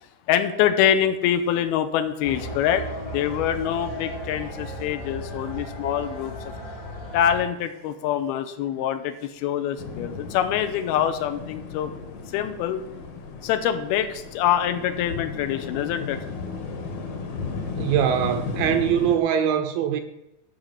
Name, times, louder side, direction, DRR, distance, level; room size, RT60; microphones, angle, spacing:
voice 1, 0.3-2.9 3.1-6.5 7.1-11.9 12.3-12.8 13.4-16.2, left 10 dB, 80° left, 2.6 m, -25 dB
sound 1, 2.2-7.4, equal, 45° left, 1.1 m, -35 dB
sound 2, 9.8-19.2, left 5 dB, 60° left, 2.5 m, -35 dB
voice 2, 17.7-20.0, right 9 dB, 75° right, 2.2 m, -22 dB
13.0 x 6.5 x 5.7 m
omnidirectional pair, 4.5 m